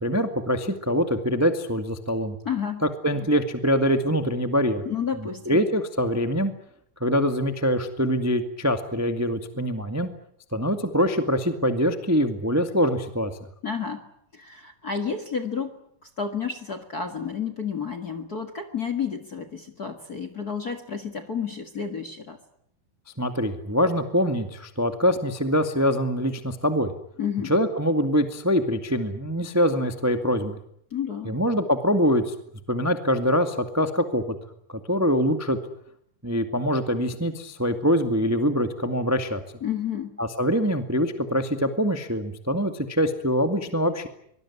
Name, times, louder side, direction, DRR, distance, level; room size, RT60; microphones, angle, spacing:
voice 1, 0.0-2.4 3.0-4.8 5.2-6.5 7.0-10.1 10.5-13.3 23.2-26.9 27.4-30.6 31.2-32.3 32.7-34.2 34.7-35.6 36.2-39.4 40.2-44.1, equal, 15° right, 7 dB, 0.6 m, -24 dB
voice 2, 2.4-2.8 4.8-5.6 13.6-15.8 16.0-22.4 27.2-27.5 30.9-31.4 39.6-40.2, left 7 dB, 40° left, 9 dB, 1.4 m, -31 dB
24.5 x 20.0 x 9.8 m, 0.71 s
omnidirectional pair, 4.3 m